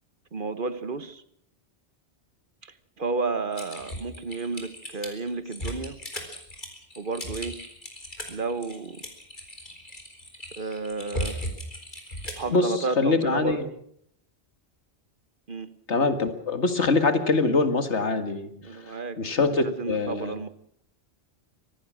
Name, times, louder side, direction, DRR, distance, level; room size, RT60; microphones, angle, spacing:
voice 1, 0.3-1.2 2.6-6.0 7.0-7.6 8.3-9.0 10.6-11.4 12.1-13.7 15.5-15.7 18.6-19.2 19.6-20.5, right 3 dB, 50° right, 13 dB, 1.3 m, -32 dB
Typing, 3.5-12.5, equal, 45° left, 4.4 m, -37 dB
voice 2, 12.5-13.7 15.9-18.5 19.2-20.3, left 3 dB, 90° left, 9 dB, 2.2 m, -24 dB
24.5 x 19.0 x 6.3 m, 0.68 s
omnidirectional pair, 1.1 m